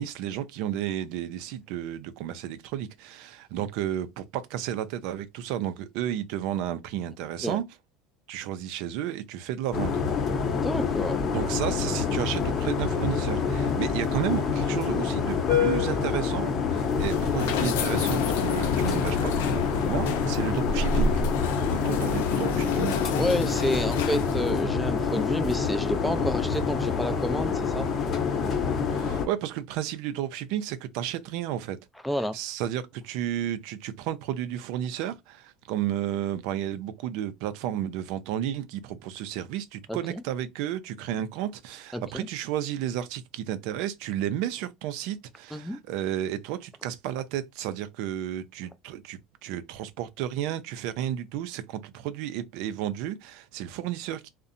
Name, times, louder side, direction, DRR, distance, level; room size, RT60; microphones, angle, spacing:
voice 1, 0.0-7.6 8.3-10.0 11.3-21.2 21.7-22.9 28.9-31.8 32.3-54.3, right 11 dB, 70° right, 0.3 m, -32 dB
sound 1, 9.7-29.3, left 6 dB, 40° left, 0.8 m, -27 dB
voice 2, 10.5-11.2 23.2-27.9 32.0-32.3 39.9-40.0 41.9-42.3 45.5-45.8, equal, 5° left, 0.4 m, -29 dB
sound 2, 16.7-24.6, left 4 dB, 85° left, 0.4 m, -30 dB
2.6 x 2.1 x 2.5 m
supercardioid pair, 110°, 0 cm